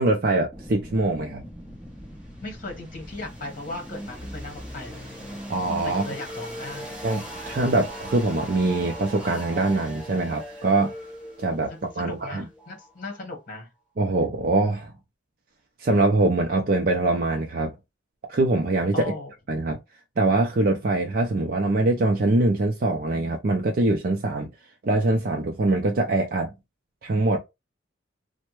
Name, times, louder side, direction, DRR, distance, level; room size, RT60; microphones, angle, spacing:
voice 1, 0.0-1.4 5.5-6.1 7.0-11.0 11.4-12.5 14.0-14.9 15.8-17.7 18.3-19.1 19.5-19.8 20.2-24.5 24.8-26.5 27.0-27.4, right 2 dB, 50° right, 0.4 m, -23 dB
sound 1, 0.5-13.3, equal, 5° right, 0.9 m, -39 dB
voice 2, 2.4-5.1 5.8-7.0 7.4-7.6 11.7-13.7 18.9-19.3, left 2 dB, 45° left, 1.2 m, -37 dB
3.2 x 2.1 x 3.1 m
head